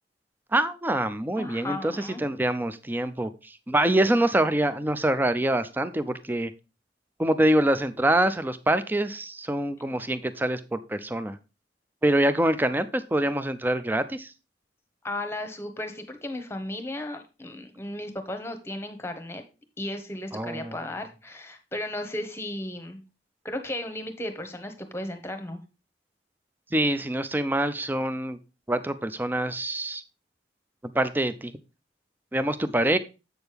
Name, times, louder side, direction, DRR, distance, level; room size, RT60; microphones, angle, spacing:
voice 1, 0.5-6.5 7.2-11.4 12.0-14.3 20.3-20.7 26.7-28.4 28.7-30.0 30.9-31.5 32.3-33.0, right 1 dB, 10° right, 12 dB, 0.4 m, -25 dB
voice 2, 1.4-2.2 15.0-19.4 19.8-23.0 23.4-25.6, left 1 dB, 15° left, 7 dB, 1.0 m, -35 dB
7.8 x 6.3 x 3.4 m, 0.30 s
head